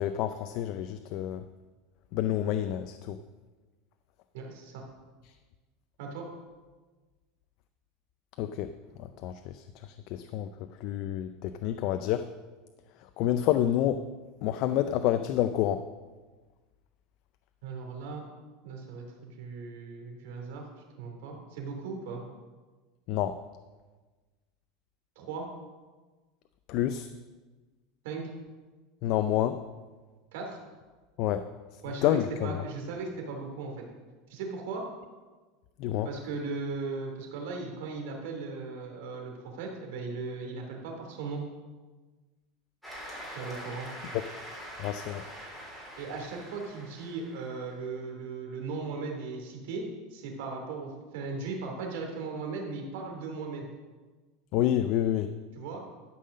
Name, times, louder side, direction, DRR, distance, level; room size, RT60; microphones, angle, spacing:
voice 1, 0.0-1.4 2.1-3.2 8.4-8.7 9.0-9.6 10.1-10.5 10.8-12.2 13.2-14.0 14.4-15.8 23.1-23.4 26.7-27.1 29.0-29.6 31.2-31.4 32.0-32.6 35.8-36.1 44.8-45.2 54.5-55.3, left 12 dB, 50° left, 9 dB, 0.5 m, -28 dB
voice 2, 4.3-4.8 6.0-6.3 17.6-18.2 18.6-20.7 21.0-22.2 25.2-25.5 28.0-28.2 30.3-30.6 31.8-33.9 34.3-34.9 36.0-41.4 43.3-43.9 46.0-49.8 50.1-53.7 55.5-55.8, right 4 dB, 75° right, 2 dB, 2.7 m, -37 dB
Cheering / Applause, 42.8-47.7, equal, ahead, 3.6 m, -44 dB
12.5 x 5.6 x 6.4 m, 1.3 s
supercardioid pair, 145°, 0 cm